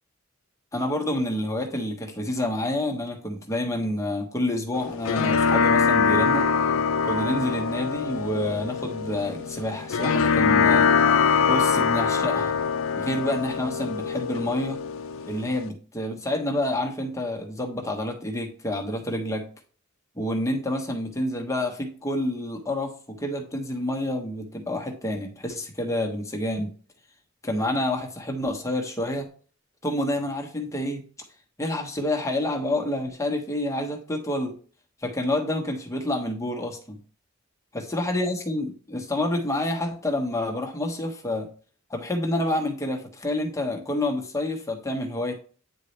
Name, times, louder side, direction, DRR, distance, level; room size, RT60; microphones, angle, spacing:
voice 1, 0.7-6.5 7.0-10.9 11.5-12.5 13.0-14.8 15.3-19.5 20.2-26.7 27.4-29.3 29.8-31.0 31.6-34.5 35.0-37.0 37.7-41.5 41.9-45.3, left 1 dB, 15° left, 2 dB, 1.1 m, -28 dB
sound 1, 4.7-15.7, left 6 dB, 85° left, 0.4 m, -23 dB
9.1 x 4.1 x 3.3 m, 0.40 s
head